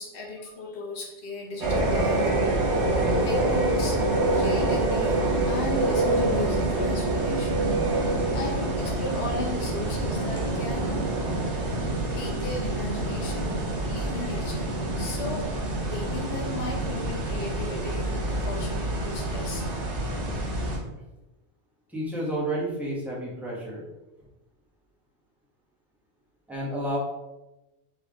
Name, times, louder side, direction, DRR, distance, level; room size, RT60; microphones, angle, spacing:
voice 1, 0.0-2.6 3.2-4.0 4.3-10.9 12.1-15.5 15.9-19.6, left 2 dB, 70° left, -2 dB, 1.3 m, -36 dB
sound 1, 1.6-20.8, right 2 dB, 75° right, 1.4 m, -26 dB
voice 2, 21.9-23.9 26.5-27.0, right 1 dB, ahead, -5 dB, 1.3 m, -30 dB
4.5 x 3.3 x 3.5 m, 1.0 s
omnidirectional pair, 1.2 m